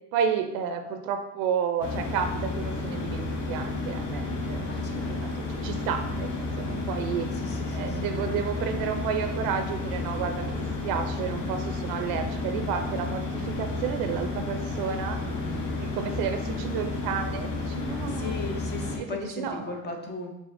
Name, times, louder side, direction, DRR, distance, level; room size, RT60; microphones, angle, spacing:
voice 1, 0.1-5.3 5.6-7.3 7.7-15.2 15.8-18.3 18.9-19.8, right 7 dB, 85° right, 6 dB, 0.6 m, -31 dB
sound 1, 1.8-19.0, left 2 dB, 55° left, 0.9 m, -31 dB
voice 2, 4.7-5.4 7.4-8.1 15.2-15.8 17.8-20.3, left 3 dB, 30° left, 3 dB, 0.7 m, -38 dB
4.9 x 3.3 x 2.6 m, 0.91 s
cardioid pair, 120°, 34 cm